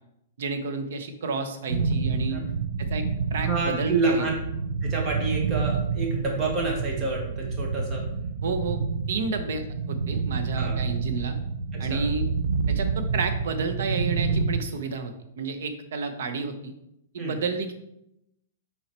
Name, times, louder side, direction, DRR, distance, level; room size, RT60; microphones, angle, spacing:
voice 1, 0.4-2.4 2.8-3.0 3.3-4.3 8.4-8.8 9.1-11.3 11.8-12.2 12.7-16.7 17.1-17.7, right 4 dB, 65° right, 8 dB, 1.0 m, -31 dB
sound 1, 1.7-14.6, right 5 dB, 80° right, 0.5 m, -28 dB
voice 2, 3.4-4.3 4.8-8.0 10.6-10.8 11.7-12.0 17.2-17.4, right 3 dB, 20° right, 0 dB, 1.3 m, -28 dB
5.9 x 4.8 x 4.4 m, 0.82 s
hypercardioid pair, 170°, 0 cm